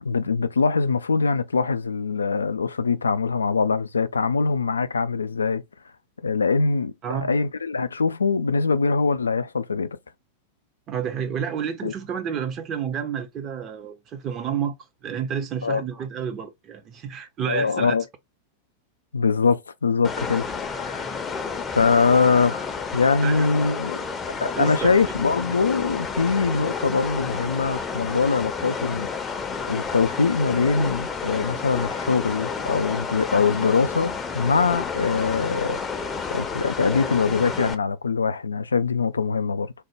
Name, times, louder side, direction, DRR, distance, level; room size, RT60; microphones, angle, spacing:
voice 1, 0.0-5.6 6.2-10.0 11.8-11.9 15.6-15.8 17.5-18.0 19.1-21.1 21.8-24.0 24.4-29.1 29.7-35.8 36.3-39.7, left 4 dB, 75° left, 0.3 m, -23 dB
voice 2, 10.9-14.7 15.0-17.9 23.2-23.5 24.6-24.9, right 8 dB, 30° right, 0.6 m, -30 dB
sound 1, 20.0-37.7, left 5 dB, 20° left, 0.6 m, -30 dB
3.4 x 2.1 x 3.0 m
figure-of-eight pair, 90°, 0 cm